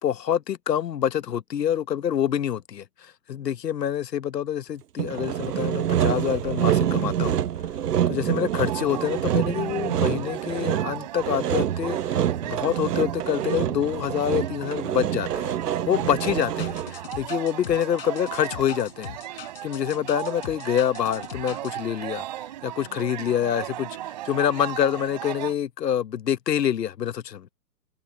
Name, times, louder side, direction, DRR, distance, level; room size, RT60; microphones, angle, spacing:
voice 1, 0.0-7.4 8.1-15.6 15.9-22.2 22.6-27.5, left 9 dB, 75° left, 1.1 m, -26 dB
Sawing, 5.0-17.0, right 10 dB, 70° right, 0.9 m, -26 dB
sound 1, 8.5-25.5, right 14 dB, 25° right, 3.5 m, -37 dB
sound 2, 16.2-21.7, left 10 dB, 35° left, 5.8 m, -41 dB
hypercardioid pair, 180°, 50 cm